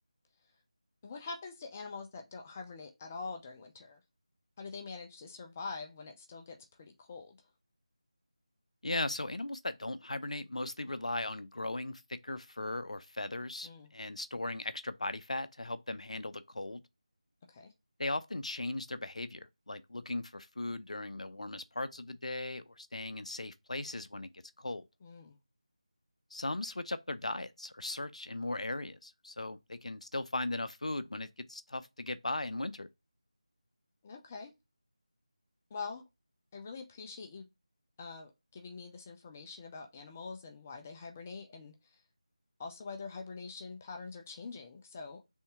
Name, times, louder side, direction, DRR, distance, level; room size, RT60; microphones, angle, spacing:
voice 1, 1.0-4.0 4.6-7.4 13.6-13.9 17.5-17.7 25.0-25.4 34.0-34.5 35.7-36.0 36.5-37.5 38.0-42.0 42.6-45.2, left 4 dB, 20° left, 0.5 m, -45 dB
voice 2, 8.8-16.8 18.0-24.3 24.6-24.9 26.3-32.9, left 2 dB, 70° left, 0.6 m, -38 dB
3.5 x 2.7 x 4.5 m
figure-of-eight pair, 165°, 4 cm